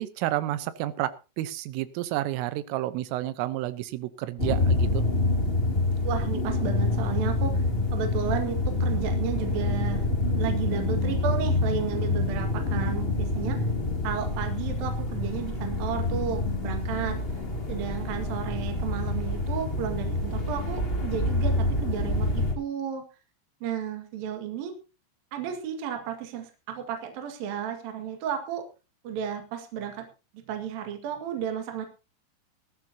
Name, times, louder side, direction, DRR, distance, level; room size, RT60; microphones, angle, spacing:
voice 1, 0.0-5.0, right 15 dB, 85° right, 13 dB, 3.5 m, -30 dB
sound 1, 4.4-22.5, left 2 dB, 20° left, 1.6 m, -27 dB
voice 2, 6.0-7.6 7.9-10.1 10.4-13.6 14.0-17.2 17.7-23.0 23.6-24.7 25.3-28.6 29.0-30.1 30.5-31.9, right 8 dB, 55° right, 5 dB, 3.1 m, -33 dB
19.0 x 13.5 x 2.8 m, 0.30 s
omnidirectional pair, 5.8 m